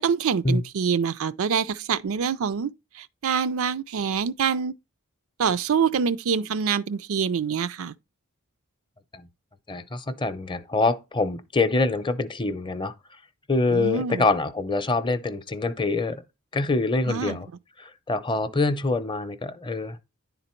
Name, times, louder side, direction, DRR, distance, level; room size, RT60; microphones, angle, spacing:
voice 1, 0.0-2.7 2.9-4.7 5.4-7.9 13.7-14.3 17.1-17.4, right 6 dB, 65° right, 0.5 m, -25 dB
voice 2, 9.7-12.9 13.5-16.2 16.5-17.5 17.8-20.0, left 3 dB, 20° left, 0.6 m, -25 dB
10.0 x 4.0 x 4.4 m
head